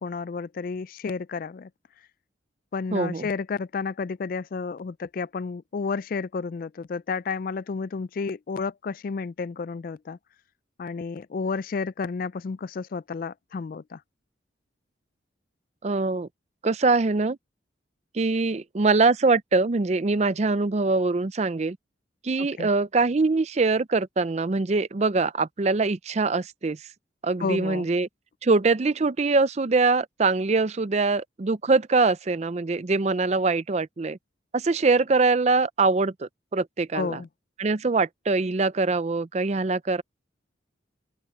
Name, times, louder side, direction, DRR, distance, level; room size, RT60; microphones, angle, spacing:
voice 1, 0.0-1.7 2.7-10.2 10.8-14.0 22.4-22.7 27.4-27.9 36.9-37.3, left 4 dB, 50° left, 0.3 m, -31 dB
voice 2, 2.9-3.3 15.8-16.3 16.6-17.4 18.1-21.8 22.2-26.8 27.2-28.1 28.4-34.2 34.5-37.2 37.6-40.0, right 3 dB, 35° right, 0.5 m, -23 dB
open air
head